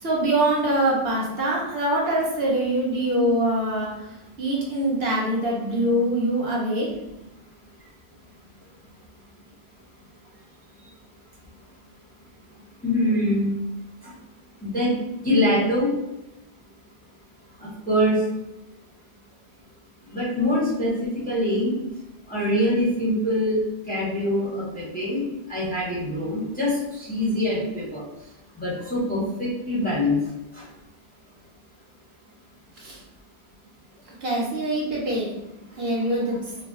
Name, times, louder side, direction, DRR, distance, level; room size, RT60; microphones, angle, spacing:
voice 1, 0.0-3.9 4.4-6.9 32.8-33.0 34.2-35.3 35.8-36.4, right 1 dB, 70° right, -4 dB, 1.0 m, -23 dB
voice 2, 12.8-13.5 14.6-15.0 15.2-15.9 17.9-18.2 20.1-21.7 22.3-23.6 23.9-25.2 25.5-26.7 27.0-28.0 28.6-30.2, left 1 dB, 10° left, -7 dB, 0.7 m, -24 dB
2.3 x 2.2 x 3.7 m, 0.95 s
omnidirectional pair, 1.0 m